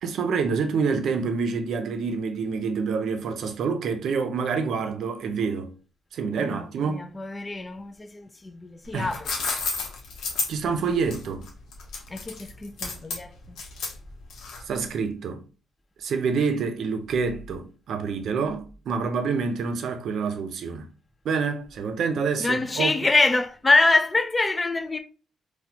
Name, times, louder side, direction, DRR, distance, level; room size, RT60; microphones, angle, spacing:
voice 1, 0.0-5.7 6.1-7.1 8.9-9.1 10.5-11.5 14.7-15.4 16.0-20.9 21.2-23.0, right 5 dB, 65° right, 0.6 m, -27 dB
voice 2, 6.4-9.3 12.1-13.6 22.4-25.0, left 3 dB, 25° left, 0.4 m, -25 dB
sound 1, 8.8-14.8, left 4 dB, 75° left, 0.9 m, -32 dB
4.1 x 2.3 x 2.8 m
cardioid pair, 90°, 0 cm